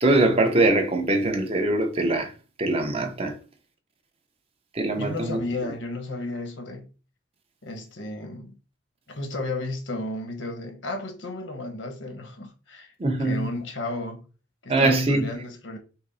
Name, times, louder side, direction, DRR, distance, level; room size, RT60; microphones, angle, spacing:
voice 1, 0.0-2.3 2.6-3.4 4.7-5.4 13.0-13.5 14.7-15.3, right 2 dB, 30° right, 0.8 m, -22 dB
voice 2, 5.0-6.9 7.6-8.6 9.1-12.9 13.2-14.3 14.6-15.8, left 2 dB, 85° left, 1.0 m, -33 dB
5.9 x 2.0 x 4.0 m
head